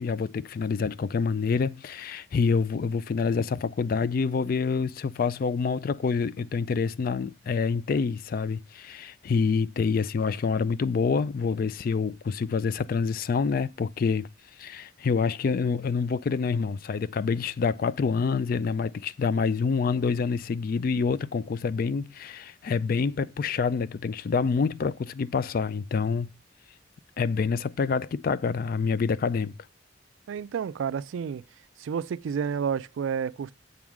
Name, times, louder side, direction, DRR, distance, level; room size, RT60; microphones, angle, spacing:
voice 1, 0.0-14.3 14.6-26.3 27.2-29.5, left 5 dB, 50° left, 0.3 m, -27 dB
sound 1, 16.3-17.0 17.9-18.9 19.5-19.6 20.0-21.0, left 2 dB, 85° left, 2.0 m, -53 dB
voice 2, 30.3-31.4 31.8-33.5, right 7 dB, 80° right, 0.3 m, -30 dB
7.9 x 3.6 x 6.0 m
head